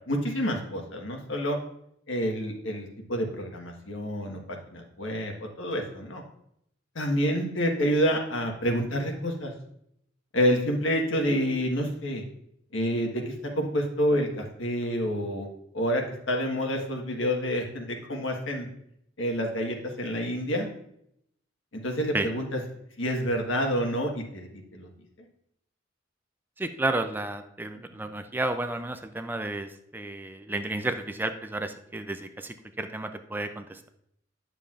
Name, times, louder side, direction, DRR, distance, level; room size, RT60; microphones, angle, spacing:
voice 1, 0.1-1.6 2.1-6.2 6.9-9.5 10.3-12.2 12.7-15.5 15.7-18.7 19.2-20.7 21.8-22.6 23.0-24.9 27.7-27.8, equal, 85° left, 2 dB, 1.4 m, -28 dB
voice 2, 26.6-33.9, right 2 dB, 10° right, 8 dB, 0.4 m, -32 dB
9.3 x 6.8 x 2.4 m, 0.73 s
head